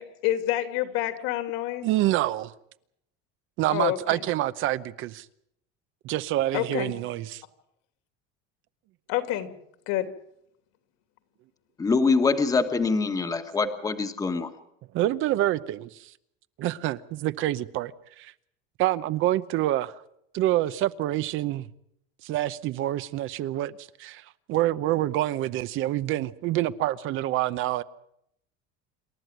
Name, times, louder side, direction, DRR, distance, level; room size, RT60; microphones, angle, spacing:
voice 1, 0.0-1.9 3.7-4.2 6.5-6.9 9.1-9.5 9.9-10.1, left 14 dB, 65° left, 3.0 m, -28 dB
voice 2, 1.8-2.5 3.6-5.3 6.0-7.4 14.9-16.1 16.6-18.3 18.8-20.0 20.3-21.7 22.2-27.8, right 14 dB, 45° right, 0.8 m, -27 dB
voice 3, 11.8-14.5, left 4 dB, 10° left, 1.4 m, -24 dB
28.0 x 13.0 x 9.2 m
cardioid pair, 170°, 29 cm